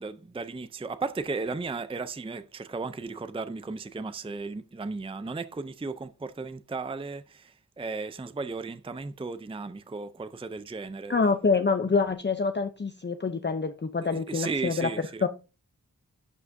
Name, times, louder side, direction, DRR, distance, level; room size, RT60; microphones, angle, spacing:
voice 1, 0.0-11.1 14.1-15.3, right 4 dB, 15° right, 0.5 m, -35 dB
voice 2, 11.1-15.3, left 4 dB, 30° left, 0.6 m, -26 dB
11.0 x 5.9 x 2.6 m
wide cardioid pair, 55°, 37 cm